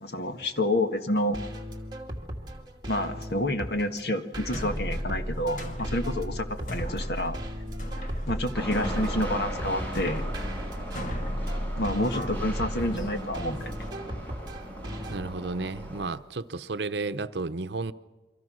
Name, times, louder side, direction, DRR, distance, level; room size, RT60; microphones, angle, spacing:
voice 1, 0.0-1.4 2.9-7.4 8.3-10.2 11.8-13.8, left 1 dB, 65° left, 1.7 m, -29 dB
sound 1, 1.1-15.2, equal, 25° right, 2.5 m, -39 dB
sound 2, 4.4-13.9, equal, 45° left, 2.3 m, -35 dB
sound 3, 8.5-16.1, equal, 10° left, 6.0 m, -38 dB
voice 2, 15.1-17.9, right 3 dB, 75° right, 0.8 m, -32 dB
29.0 x 24.5 x 6.3 m
head